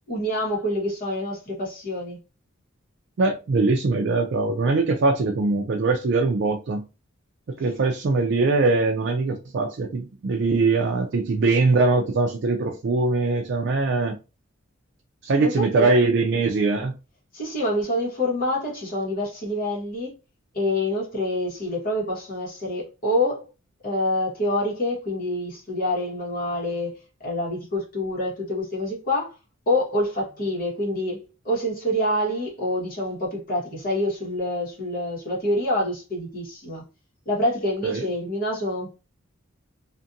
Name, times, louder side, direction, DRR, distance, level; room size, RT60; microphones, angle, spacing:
voice 1, 0.1-2.2 15.4-15.9 17.3-20.1 20.5-23.4 23.8-29.3 29.7-36.8 37.2-39.0, left 1 dB, 45° left, 1.2 m, -26 dB
voice 2, 3.2-6.8 7.5-14.2 15.2-16.9 37.8-38.1, right 3 dB, 55° right, 0.4 m, -22 dB
2.5 x 2.5 x 2.6 m
head